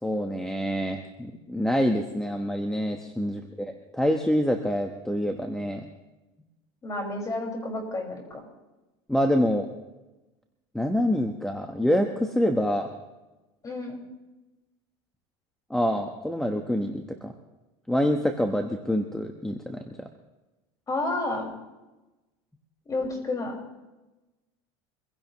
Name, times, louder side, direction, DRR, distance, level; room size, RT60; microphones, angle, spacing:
voice 1, 0.0-5.9 9.1-9.7 10.7-12.9 15.7-17.3 17.9-20.0, equal, 5° left, 4 dB, 1.2 m, -26 dB
voice 2, 6.8-8.4 13.6-14.0 20.9-21.5 22.9-23.5, left 2 dB, 25° left, 1 dB, 5.3 m, -30 dB
25.0 x 16.0 x 3.1 m, 1.1 s
supercardioid pair, 115°, 14 cm